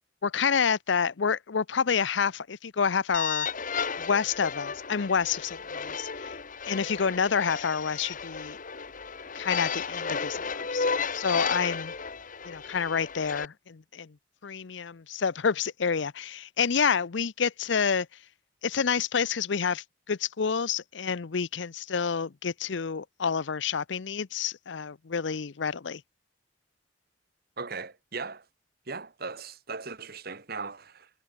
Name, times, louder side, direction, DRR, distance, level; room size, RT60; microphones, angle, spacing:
voice 1, 0.2-3.5 4.0-6.3 6.7-8.6 9.3-10.9 11.1-11.9 12.5-14.2 14.4-18.1 18.6-26.0, left 6 dB, 70° left, 0.6 m, -28 dB
sound 1, 3.1-13.4, left 5 dB, 45° left, 1.5 m, -33 dB
voice 2, 27.6-28.5 28.9-31.1, right 4 dB, 55° right, 2.2 m, -38 dB
head